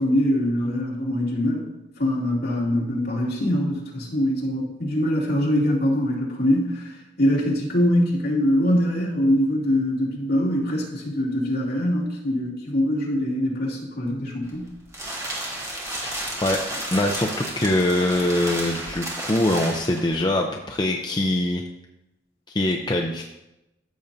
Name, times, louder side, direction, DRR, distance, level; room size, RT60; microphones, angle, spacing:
voice 1, 0.0-1.7 2.0-6.9 7.2-14.8, equal, 60° left, -4 dB, 2.5 m, -23 dB
sound 1, 14.4-20.1, right 1 dB, 15° right, 1.7 m, -32 dB
voice 2, 16.0-16.6 16.9-21.6 22.5-23.2, left 1 dB, 25° left, 2 dB, 0.5 m, -23 dB
14.0 x 6.9 x 2.7 m, 0.94 s
head